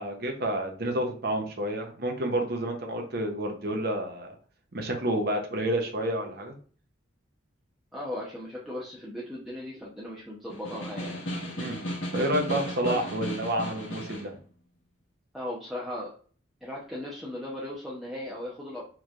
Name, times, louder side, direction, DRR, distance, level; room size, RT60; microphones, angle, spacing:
voice 1, 0.0-4.3 4.7-6.6 11.6-11.9 12.1-14.3, right 1 dB, 55° right, 3 dB, 0.8 m, -29 dB
voice 2, 7.9-11.2 12.8-13.0 15.3-16.1 16.6-18.8, left 1 dB, ahead, -6 dB, 0.8 m, -37 dB
Snare drum, 10.5-14.3, equal, 90° left, 1.4 m, -35 dB
4.5 x 3.3 x 2.4 m, 0.42 s
head